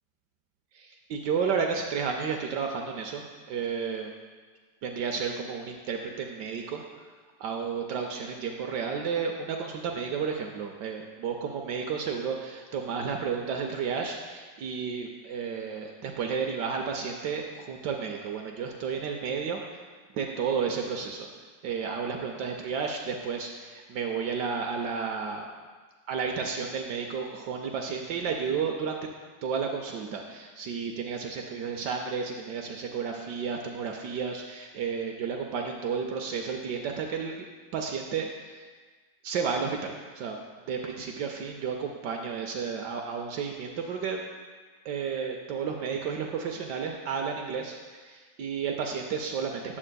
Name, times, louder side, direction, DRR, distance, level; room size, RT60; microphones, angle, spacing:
voice 1, 0.7-4.1 4.8-6.8 7.4-19.6 20.1-21.3 21.6-25.5 26.1-29.1 29.4-37.3 37.7-38.7 39.2-40.4 40.7-44.2 44.8-49.8, right 6 dB, 75° right, 3 dB, 1.1 m, -32 dB
9.8 x 7.4 x 2.2 m, 1.5 s
omnidirectional pair, 2.0 m